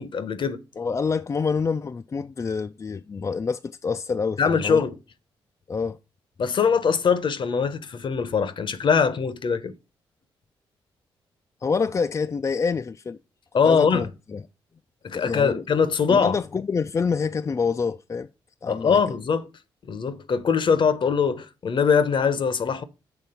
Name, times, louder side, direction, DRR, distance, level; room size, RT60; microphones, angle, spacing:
voice 1, 0.0-0.6 4.4-4.9 6.4-9.7 13.5-14.1 15.0-16.4 18.7-19.5 19.9-22.8, left 6 dB, 55° left, 0.8 m, -22 dB
voice 2, 0.8-4.9 5.7-6.0 11.6-13.2 13.6-14.4 15.1-15.6 16.1-18.3 18.6-19.0, left 5 dB, 30° left, 0.3 m, -27 dB
7.0 x 3.5 x 5.5 m
cardioid pair, 60°, 10 cm